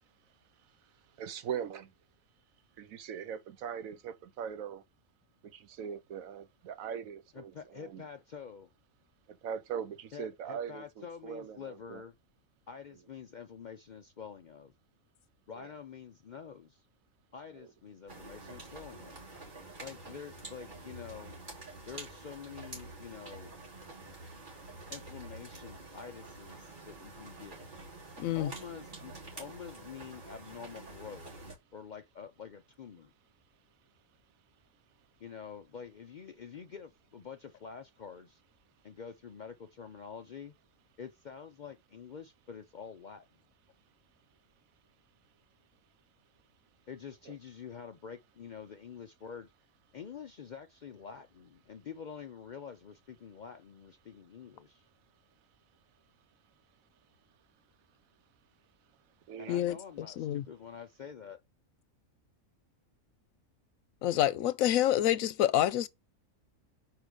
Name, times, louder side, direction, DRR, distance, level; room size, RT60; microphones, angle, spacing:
voice 1, 1.2-1.9 2.8-4.8 5.4-8.0 9.3-12.0 15.6-15.7 17.5-17.7 47.3-47.4 59.3-59.6, right 8 dB, 85° right, 1.2 m, -41 dB
voice 2, 7.3-8.7 10.1-12.1 12.7-14.7 15.5-16.8 17.3-19.2 19.8-21.4 21.9-23.5 24.9-27.6 28.3-31.4 31.7-33.1 35.2-38.4 38.8-40.5 41.0-43.2 46.9-49.5 49.9-54.9 59.4-61.4, left 7 dB, 65° left, 0.4 m, -47 dB
sound 1, 18.1-31.6, right 2 dB, 35° right, 3.1 m, -48 dB
voice 3, 28.2-28.5 59.5-60.4 64.0-65.9, left 12 dB, 90° left, 1.0 m, -28 dB
4.8 x 4.6 x 5.2 m
omnidirectional pair, 1.4 m